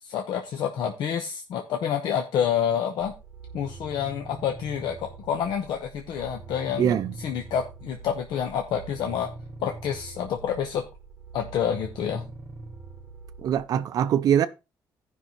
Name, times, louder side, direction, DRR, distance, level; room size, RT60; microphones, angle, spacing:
voice 1, 0.0-3.1 3.5-9.3 9.6-10.8 11.3-12.3, left 8 dB, 85° left, 0.9 m, -28 dB
sound 1, 3.0-13.7, right 3 dB, 15° right, 1.1 m, -43 dB
voice 2, 6.8-7.1 13.4-14.5, right 9 dB, 60° right, 0.4 m, -22 dB
16.5 x 5.5 x 3.0 m
cardioid pair, 170°, 7 cm